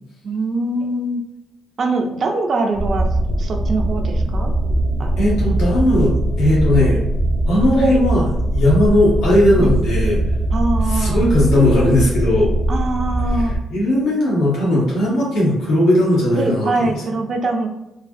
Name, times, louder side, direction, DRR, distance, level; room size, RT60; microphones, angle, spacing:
voice 1, 0.2-1.2 1.8-3.1 3.4-4.6 5.0-5.5 7.7-8.0 9.5-9.8 10.5-11.2 12.7-13.5 16.4-17.7, right 2 dB, 50° right, 3 dB, 0.6 m, -23 dB
sound 1, 2.7-13.6, right 1 dB, 55° left, 1.1 m, -20 dB
voice 2, 5.2-7.0 7.5-8.2 8.5-10.2 10.9-12.5 13.7-16.9, left 1 dB, 85° left, -5 dB, 1.1 m, -17 dB
3.1 x 2.4 x 2.6 m, 0.90 s
cardioid pair, 90°, 0 cm